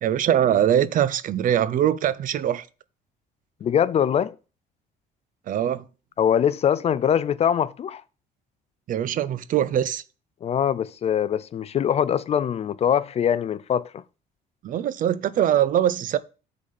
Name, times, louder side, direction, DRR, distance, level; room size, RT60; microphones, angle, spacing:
voice 1, 0.0-2.7 5.5-5.8 8.9-10.0 14.6-16.2, right 10 dB, 50° right, 0.6 m, -22 dB
voice 2, 3.6-4.4 6.2-8.0 10.4-14.0, left 9 dB, 40° left, 0.4 m, -23 dB
6.2 x 4.0 x 5.7 m
cardioid pair, 110°, 17 cm